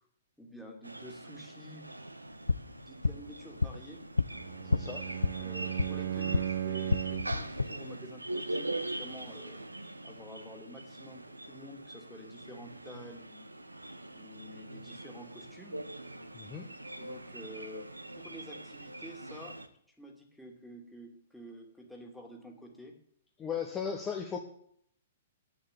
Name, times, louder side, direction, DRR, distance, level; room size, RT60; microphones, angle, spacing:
voice 1, 0.4-1.8 2.6-4.0 5.4-9.6 10.0-13.5 14.1-15.8 17.0-17.9 18.2-19.5 20.0-22.9, equal, ahead, 0 dB, 2.4 m, -49 dB
sound 1, 0.8-19.7, right 1 dB, 85° right, 0.9 m, -43 dB
sound 2, 2.3-6.5 6.8-7.6, left 3 dB, 80° left, 0.4 m, -32 dB
Bowed string instrument, 4.3-7.5, right 10 dB, 50° right, 0.4 m, -36 dB
voice 2, 4.6-5.0 16.3-16.7 23.4-24.4, left 7 dB, 20° left, 2 dB, 1.2 m, -36 dB
8.9 x 7.3 x 8.9 m, 0.66 s
figure-of-eight pair, 110°, 0 cm